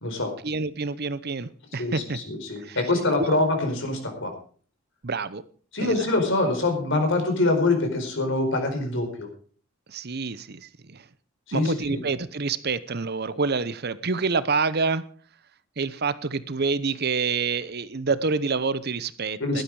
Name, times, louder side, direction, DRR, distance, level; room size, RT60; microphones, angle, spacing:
voice 1, 0.4-2.2 2.6-2.8 3.3-3.4 5.0-5.4 5.8-6.0 9.9-11.0 11.5-15.0 15.8-19.6, right 4 dB, 50° right, 15 dB, 0.8 m, -27 dB
voice 2, 1.8-4.3 5.7-9.3 11.5-12.0 19.4-19.6, left 2 dB, 60° left, 4 dB, 4.6 m, -25 dB
15.5 x 12.0 x 4.9 m, 0.43 s
head